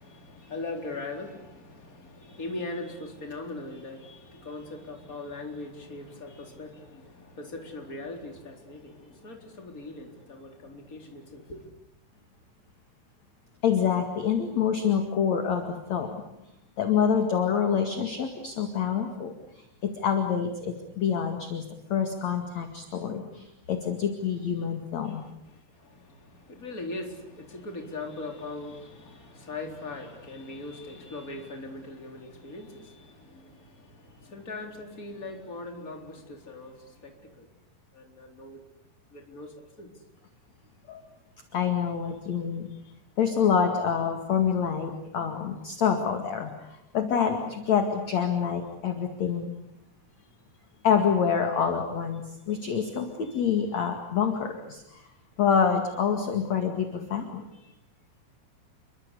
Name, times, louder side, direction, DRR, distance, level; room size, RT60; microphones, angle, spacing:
voice 1, 0.0-11.7 25.5-37.5 37.9-38.6 39.1-39.9, left 2 dB, 20° left, 3 dB, 4.1 m, -40 dB
voice 2, 13.6-16.2 16.8-25.3 40.9-41.0 41.5-42.7 43.2-49.5 50.8-55.1 55.4-57.4, left 7 dB, 45° left, 5 dB, 2.9 m, -27 dB
29.5 x 23.5 x 8.4 m, 0.84 s
omnidirectional pair, 5.0 m